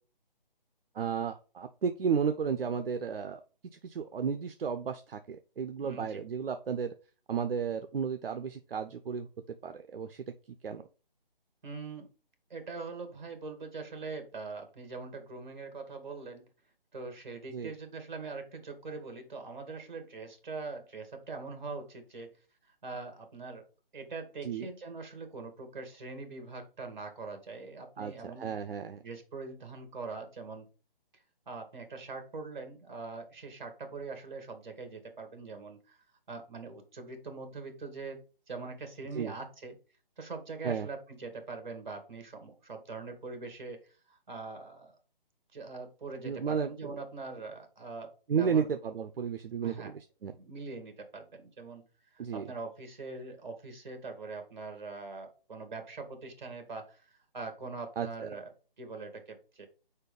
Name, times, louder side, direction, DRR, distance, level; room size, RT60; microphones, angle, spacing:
voice 1, 0.9-3.4 3.7-6.9 7.3-9.3 9.6-10.2 10.6-10.8 17.5-17.7 24.4-24.7 28.0-29.0 39.1-39.4 40.6-40.9 46.2-47.0 48.3-50.3 52.2-52.5 58.0-58.3, right 6 dB, 75° right, 8 dB, 0.7 m, -33 dB
voice 2, 5.8-6.2 11.6-12.1 12.5-16.4 16.9-22.3 22.8-23.7 23.9-28.5 29.0-30.7 31.5-36.0 36.3-38.2 38.5-39.8 40.2-44.9 45.5-48.7 49.6-49.9 50.4-51.8 52.1-58.5 58.8-59.7, right 3 dB, 50° right, 6 dB, 2.0 m, -42 dB
4.6 x 4.4 x 5.2 m, 0.35 s
hypercardioid pair, 170°, 29 cm